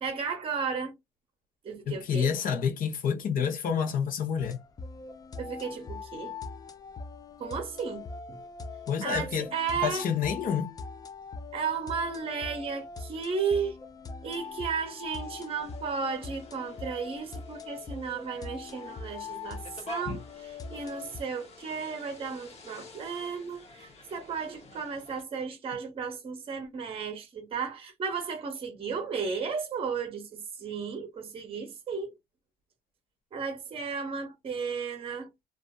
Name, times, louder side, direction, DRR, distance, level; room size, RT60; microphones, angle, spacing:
voice 1, 0.0-0.9 1.6-2.3 5.4-6.4 7.4-8.4 9.0-10.1 11.5-13.8 14.2-32.1 33.3-35.3, right 5 dB, 35° right, 0.7 m, -34 dB
voice 2, 1.9-4.6 8.9-9.5 9.8-10.7 20.1-20.2, left 7 dB, 55° left, 0.7 m, -28 dB
sound 1, 4.4-21.2, left 4 dB, 20° left, 0.4 m, -42 dB
sound 2, 15.2-25.2, left 3 dB, 40° left, 1.0 m, -50 dB
2.5 x 2.3 x 2.2 m
cardioid pair, 110°, 17 cm